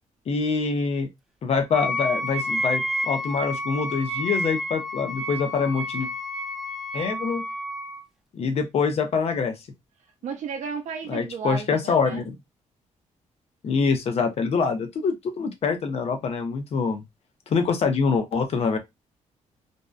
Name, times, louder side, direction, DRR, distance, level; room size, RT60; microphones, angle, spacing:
voice 1, 0.3-1.1 1.4-6.1 6.9-7.4 8.3-9.5 11.1-12.4 13.6-17.0 17.5-18.8, left 5 dB, 50° left, 0.6 m, -25 dB
Wind instrument woodwind instrument, 1.7-8.0, equal, 5° right, 0.4 m, -30 dB
voice 2, 10.2-12.2, right 6 dB, 60° right, 0.5 m, -33 dB
2.6 x 2.2 x 2.2 m
cardioid pair, 145°, 13 cm